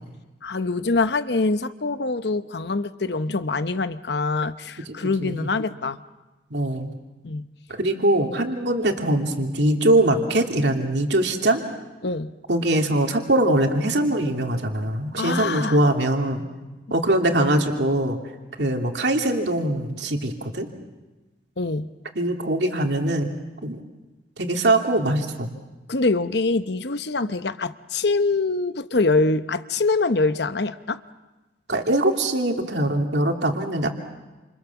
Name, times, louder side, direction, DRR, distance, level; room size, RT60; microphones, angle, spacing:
voice 1, 0.4-6.0 7.2-7.4 12.0-12.3 15.2-15.8 21.6-21.9 25.9-31.0, left 3 dB, 60° left, 12 dB, 0.9 m, -24 dB
voice 2, 4.9-5.5 6.5-6.9 7.7-11.6 12.5-16.4 16.9-18.2 18.6-20.7 22.1-23.3 23.6-23.8 24.4-25.5 31.7-33.9, right 1 dB, 65° right, 3 dB, 2.8 m, -22 dB
29.0 x 27.5 x 7.1 m, 1.1 s
head